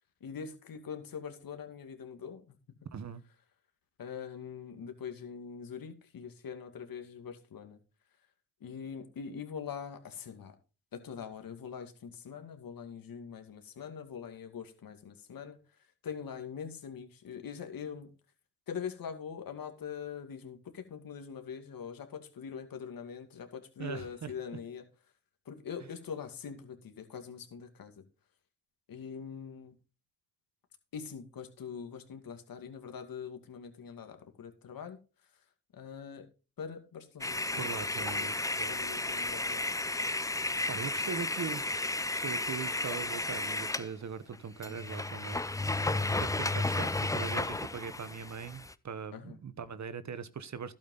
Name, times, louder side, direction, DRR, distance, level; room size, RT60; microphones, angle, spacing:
voice 1, 0.2-2.6 4.0-7.8 8.6-10.5 10.9-18.1 18.7-24.9 25.5-28.0 28.9-29.7 30.9-35.0 35.7-36.3 36.6-37.7 38.0-38.3 38.7-39.7 49.1-49.4, left 7 dB, 65° left, 2.4 m, -43 dB
voice 2, 2.9-3.2 23.8-24.3 37.5-38.8 40.7-45.4 45.8-50.7, right 6 dB, 50° right, 1.2 m, -41 dB
sound 1, 37.2-43.9 44.3-44.4 44.6-48.7, left 2 dB, 10° left, 0.6 m, -33 dB
12.0 x 8.5 x 3.9 m
supercardioid pair, 60°, 37 cm